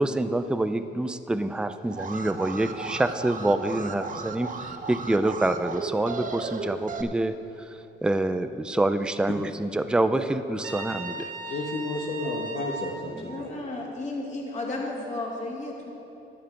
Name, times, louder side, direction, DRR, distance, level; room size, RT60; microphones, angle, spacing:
voice 1, 0.0-11.3, right 2 dB, 5° right, 10 dB, 0.4 m, -26 dB
Alarm, 1.9-7.0, right 4 dB, 40° right, 0.8 m, -35 dB
Trumpet, 10.6-12.9, right 2 dB, 85° right, 1.5 m, -36 dB
voice 2, 11.5-13.5, left 2 dB, 60° left, -3 dB, 1.4 m, -32 dB
voice 3, 13.1-15.9, left 2 dB, 35° left, -3 dB, 2.6 m, -33 dB
11.5 x 8.6 x 5.2 m, 2.9 s
cardioid pair, 90°, 20 cm